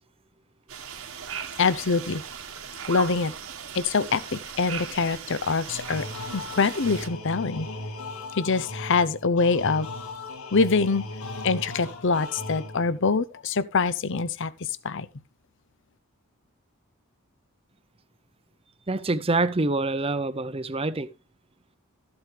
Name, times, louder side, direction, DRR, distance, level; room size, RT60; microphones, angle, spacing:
sound 1, 0.7-7.1, right 7 dB, 75° right, 1.5 m, -38 dB
voice 1, 1.6-2.2 2.9-3.3 3.7-6.1 6.3-7.7 8.3-9.9 10.5-11.1 11.4-15.1, left 4 dB, 60° left, 0.7 m, -24 dB
sound 2, 5.7-13.1, left 2 dB, 80° left, 1.8 m, -37 dB
voice 2, 18.9-21.1, right 2 dB, 25° right, 0.7 m, -26 dB
13.0 x 7.8 x 3.4 m
head